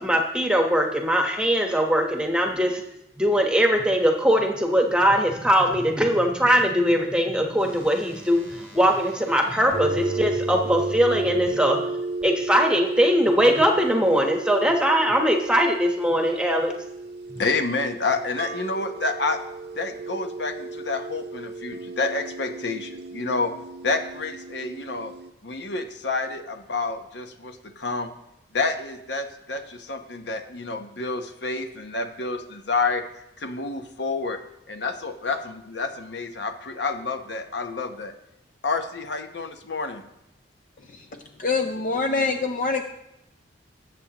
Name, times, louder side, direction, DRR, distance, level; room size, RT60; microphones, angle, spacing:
voice 1, 0.0-2.8 3.2-11.8 12.2-16.7, equal, 5° right, 2 dB, 1.1 m, -21 dB
sound 1, 7.6-11.5 12.2-12.3, equal, 20° left, 2.2 m, -39 dB
sound 2, 9.7-25.3, right 3 dB, 55° right, 0.6 m, -34 dB
voice 2, 17.4-19.4 19.7-23.5 23.8-25.1 25.4-28.1 28.5-34.4 34.7-38.1 38.6-40.0, left 3 dB, 65° left, 6 dB, 1.0 m, -29 dB
voice 3, 41.4-42.8, left 4 dB, 45° left, 5 dB, 0.6 m, -24 dB
20.0 x 7.8 x 3.0 m, 0.85 s
head